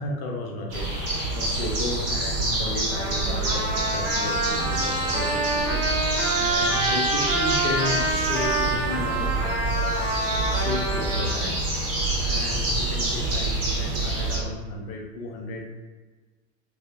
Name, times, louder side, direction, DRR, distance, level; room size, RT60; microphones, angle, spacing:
voice 1, 0.0-10.0 10.5-11.7 12.2-15.7, left 2 dB, 55° left, 0 dB, 0.7 m, -33 dB
sound 1, 0.7-14.4, right 2 dB, 30° right, 0.9 m, -27 dB
Trumpet, 2.9-11.3, right 2 dB, 5° right, 0.7 m, -27 dB
2.6 x 2.0 x 2.4 m, 1.3 s
figure-of-eight pair, 75°, 48 cm